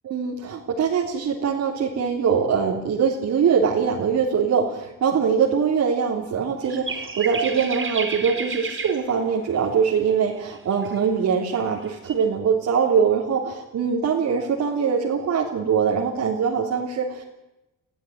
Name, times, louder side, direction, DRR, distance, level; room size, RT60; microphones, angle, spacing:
voice 1, 0.0-17.2, right 6 dB, 65° right, -2 dB, 3.5 m, -22 dB
sound 1, 6.6-9.1 10.1-11.0 11.8-12.2, right 4 dB, 40° right, 4.4 m, -31 dB
21.0 x 14.5 x 9.5 m, 0.93 s
cardioid pair, 90°, 30 cm